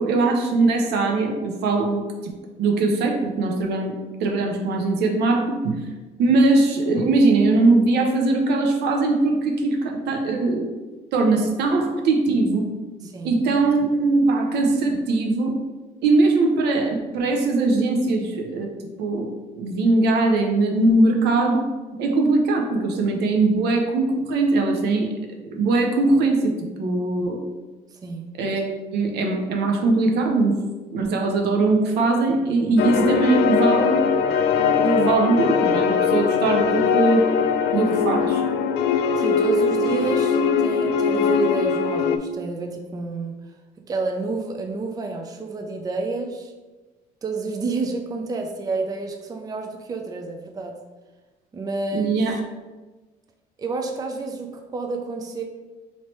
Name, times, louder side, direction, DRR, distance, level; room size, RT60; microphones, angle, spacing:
voice 1, 0.0-2.0 2.6-3.9 4.2-5.8 6.2-10.7 11.1-12.7 13.2-15.5 16.0-18.7 19.0-21.6 22.0-25.1 25.5-27.4 28.4-30.6 30.9-34.1 34.7-37.3 37.7-38.4 51.9-52.4, right 3 dB, 75° right, 2 dB, 0.7 m, -21 dB
voice 2, 13.0-13.4 28.0-28.3 39.2-43.3 43.9-46.5 47.2-50.8 51.5-52.1 53.6-55.4, right 3 dB, 20° right, 4 dB, 0.4 m, -29 dB
sound 1, 32.8-42.2, left 6 dB, 75° left, 0.4 m, -21 dB
3.1 x 2.8 x 4.4 m, 1.2 s
cardioid pair, 110°, 17 cm